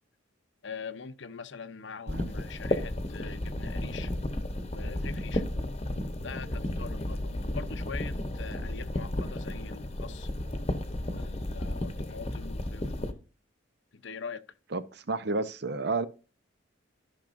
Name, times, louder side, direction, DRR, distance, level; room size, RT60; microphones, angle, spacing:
voice 1, 0.6-4.1 4.7-5.4 6.2-10.3 11.1-12.9 13.9-14.4, left 5 dB, 65° left, 0.7 m, -43 dB
sound 1, 2.1-13.1, left 1 dB, 30° left, 1.0 m, -33 dB
voice 2, 14.7-16.1, right 3 dB, 55° right, 0.7 m, -31 dB
14.0 x 6.0 x 2.6 m
head